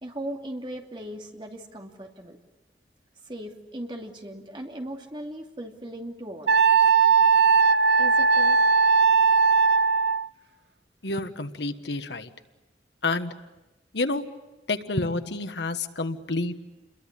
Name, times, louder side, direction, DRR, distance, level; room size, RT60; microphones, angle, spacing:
voice 1, 0.0-2.4 3.2-6.5 8.0-8.6, right 1 dB, 25° right, 2 dB, 2.7 m, -38 dB
Wind instrument woodwind instrument, 6.5-10.3, right 5 dB, 70° right, 0.8 m, -19 dB
voice 2, 11.0-12.3 13.0-13.3 13.9-14.2 14.7-16.6, left 2 dB, 80° left, 9 dB, 1.4 m, -29 dB
29.0 x 22.5 x 8.5 m, 1.0 s
head